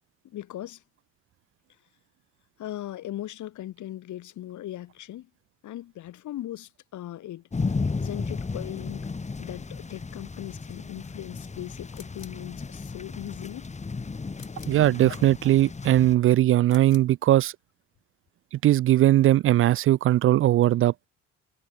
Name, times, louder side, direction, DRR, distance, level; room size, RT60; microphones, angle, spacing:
voice 1, 0.2-0.8 2.6-5.3 5.6-7.4 8.0-9.1 9.4-13.7, left 13 dB, 50° left, 4.2 m, -38 dB
sound 1, 7.5-16.1, left 4 dB, 20° left, 2.5 m, -34 dB
sound 2, 11.9-12.5 14.3-14.9 16.6-17.2, left 5 dB, 90° left, 2.5 m, -50 dB
voice 2, 14.7-17.5 18.5-20.9, right 14 dB, 35° right, 0.5 m, -20 dB
figure-of-eight pair, 60°, 38 cm